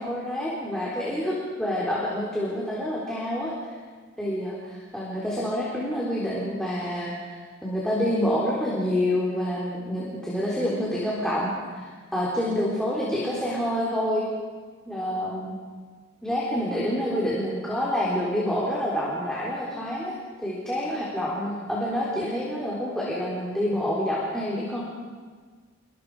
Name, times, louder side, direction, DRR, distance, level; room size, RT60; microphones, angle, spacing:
voice 1, 0.0-3.5 4.2-14.2 14.9-15.5 16.2-24.8, equal, 5° left, -6 dB, 4.0 m, -27 dB
28.0 x 24.5 x 5.0 m, 1.5 s
head